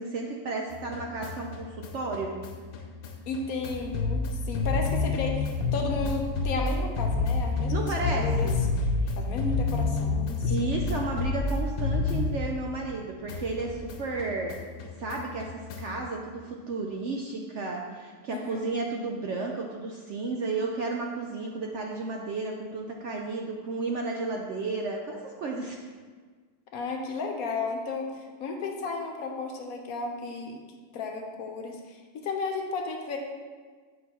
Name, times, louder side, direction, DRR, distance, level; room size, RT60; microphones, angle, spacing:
voice 1, 0.0-2.4 7.7-8.6 9.0-9.1 10.4-14.6 15.0-25.8, right 3 dB, 65° right, 1 dB, 0.7 m, -33 dB
sound 1, 0.7-13.0 13.3-16.1, left 3 dB, 90° left, 1.2 m, -29 dB
voice 2, 3.3-8.9 9.2-10.5 18.3-18.7 26.7-30.6 30.9-33.2, left 3 dB, 70° left, 2 dB, 1.1 m, -33 dB
8.0 x 5.3 x 2.9 m, 1.5 s
omnidirectional pair, 1.7 m